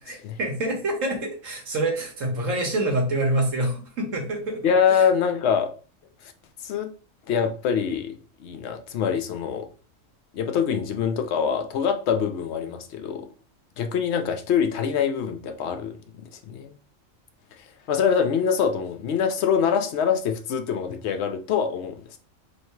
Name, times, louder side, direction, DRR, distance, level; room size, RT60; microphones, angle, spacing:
voice 1, 0.0-4.6 4.9-5.1, right 1 dB, 70° right, 0 dB, 1.5 m, -26 dB
voice 2, 4.6-5.7 6.6-6.9 7.3-9.7 10.3-13.3 13.8-15.9 16.4-16.8 17.9-22.2, left 7 dB, 65° left, 6 dB, 0.8 m, -24 dB
3.1 x 2.8 x 4.4 m, 0.39 s
omnidirectional pair, 1.4 m